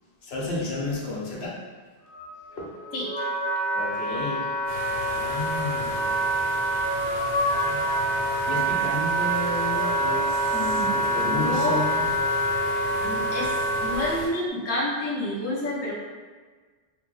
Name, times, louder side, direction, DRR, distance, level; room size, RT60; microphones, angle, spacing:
voice 1, 0.2-1.6 2.6-2.8 3.7-4.5 5.1-6.2 7.6-8.1 8.5-12.0, left 2 dB, 70° left, -3 dB, 0.9 m, -32 dB
sound 1, 2.0-14.5, equal, 90° right, 0.9 m, -43 dB
Wind instrument woodwind instrument, 2.5-14.1, right 1 dB, 25° right, 1.2 m, -26 dB
sound 2, 4.7-14.3, left 1 dB, 55° right, 1.0 m, -38 dB
voice 2, 10.5-11.0 11.2-11.8 12.7-15.9, left 1 dB, 25° left, -5 dB, 0.3 m, -29 dB
2.6 x 2.0 x 3.8 m, 1.5 s
omnidirectional pair, 1.1 m